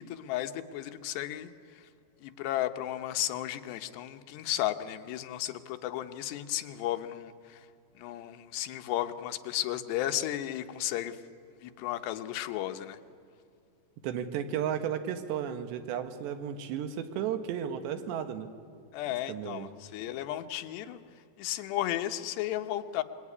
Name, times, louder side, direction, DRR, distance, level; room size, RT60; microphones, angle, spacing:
voice 1, 0.0-1.5 2.2-7.7 8.0-11.2 11.6-13.0 18.9-21.0 21.4-23.0, left 13 dB, 80° left, 8 dB, 3.2 m, -34 dB
voice 2, 14.0-18.5 19.3-19.7, right 9 dB, 90° right, 8 dB, 3.7 m, -34 dB
25.5 x 22.0 x 9.8 m, 2.3 s
omnidirectional pair, 4.9 m